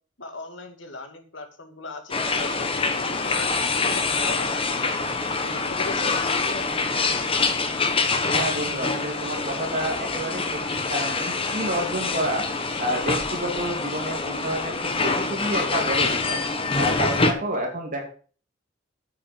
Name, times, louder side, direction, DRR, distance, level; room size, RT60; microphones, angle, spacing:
voice 1, 0.2-3.5 3.8-6.2, left 2 dB, 75° left, 6 dB, 2.3 m, -39 dB
sound 1, 2.1-17.3, left 3 dB, 30° left, 1.3 m, -25 dB
voice 2, 8.1-16.4 16.7-18.0, right 1 dB, 45° right, 2 dB, 2.9 m, -29 dB
8.8 x 8.8 x 5.2 m, 0.39 s
head